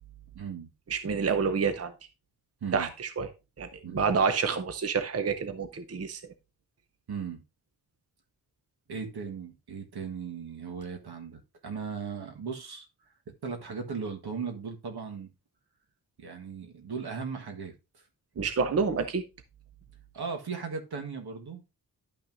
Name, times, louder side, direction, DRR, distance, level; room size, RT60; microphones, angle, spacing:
voice 1, 0.3-0.7 2.6-2.9 3.8-4.0 7.1-7.4 8.9-12.9 13.3-15.3 16.2-18.0 20.1-21.6, right 5 dB, 75° right, 1.5 m, -37 dB
voice 2, 0.9-1.9 2.7-3.3 3.6-6.2 18.4-19.2, right 5 dB, 40° right, 0.6 m, -28 dB
11.5 x 5.8 x 2.6 m
wide cardioid pair, 160°, 38 cm